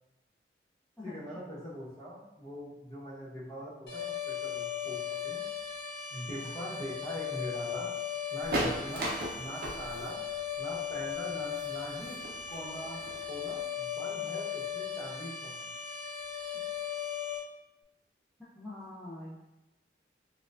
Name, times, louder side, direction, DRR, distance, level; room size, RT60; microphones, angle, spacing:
voice 1, 1.0-5.4 6.1-7.9 8.3-10.2 10.6-12.2 12.5-13.0 13.3-15.6, equal, 25° left, -8 dB, 1.0 m, -42 dB
sound 1, 3.9-17.4, left 8 dB, 65° left, 1.0 m, -37 dB
sound 2, 8.4-13.6, right 1 dB, 55° right, 0.6 m, -37 dB
voice 2, 18.5-19.4, left 2 dB, ahead, -11 dB, 0.5 m, -44 dB
4.4 x 2.3 x 2.5 m, 0.97 s
head